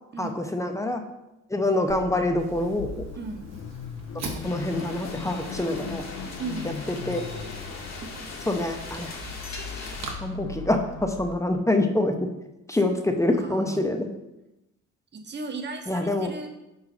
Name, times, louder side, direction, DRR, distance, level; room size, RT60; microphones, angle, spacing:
voice 1, 0.2-1.0 1.5-3.1 4.4-6.0 7.1-7.2 8.5-9.2 10.2-12.3 12.7-14.1 15.9-16.4, left 1 dB, 10° left, 5 dB, 0.6 m, -26 dB
Car / Idling / Accelerating revving vroom, 1.9-11.3, left 5 dB, 80° left, 0.8 m, -39 dB
Fire, 2.4-10.1, right 4 dB, 60° right, 1.0 m, -43 dB
voice 2, 3.2-3.5 6.4-6.7 13.4-13.8 15.1-16.5, right 3 dB, 35° right, 4 dB, 0.9 m, -36 dB
sound 1, 4.4-10.1, left 3 dB, 60° left, 1.5 m, -39 dB
4.6 x 4.0 x 5.8 m, 0.94 s
cardioid pair, 90°, 30 cm